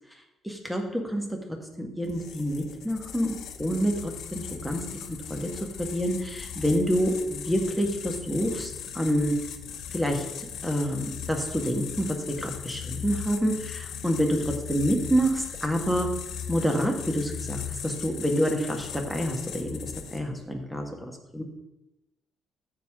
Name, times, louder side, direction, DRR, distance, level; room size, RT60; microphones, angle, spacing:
voice 1, 0.4-1.2 1.8-4.8 5.1-5.5 5.8-9.3 9.9-12.1 12.4-16.1 16.5-21.4, equal, ahead, 2 dB, 1.7 m, -28 dB
sound 1, 2.0-20.4, left 8 dB, 80° left, 0.8 m, -38 dB
13.0 x 4.9 x 3.7 m, 0.95 s
cardioid pair, 90°, 0 cm